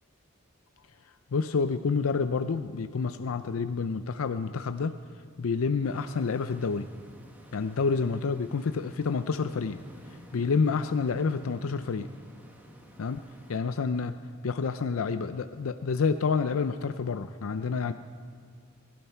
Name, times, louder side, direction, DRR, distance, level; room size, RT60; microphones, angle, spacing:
voice 1, 1.3-4.9 5.4-6.9 7.5-9.8 10.3-12.1 13.0-13.2 13.5-14.1 14.4-17.9, left 5 dB, 75° left, 10 dB, 0.5 m, -28 dB
sound 1, 5.8-13.6, equal, 10° right, 1.3 m, -52 dB
22.5 x 12.0 x 4.5 m, 2.2 s
head